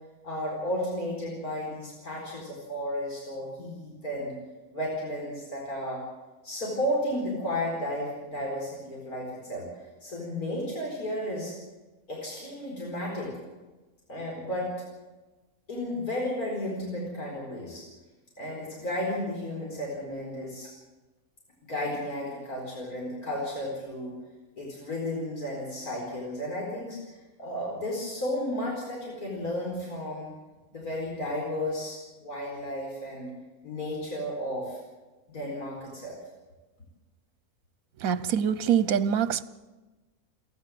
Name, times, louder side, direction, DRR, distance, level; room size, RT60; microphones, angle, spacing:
voice 1, 0.2-4.3 4.7-6.0 6.4-11.5 12.1-13.3 14.1-14.9 15.7-17.8 18.4-20.7 21.6-24.2 24.6-30.3 30.7-33.3 33.6-34.8 35.3-36.2, left 1 dB, 85° left, -2 dB, 5.0 m, -33 dB
voice 2, 38.0-39.4, right 8 dB, 70° right, 16 dB, 1.3 m, -24 dB
29.0 x 11.5 x 7.7 m, 1.2 s
omnidirectional pair, 1.5 m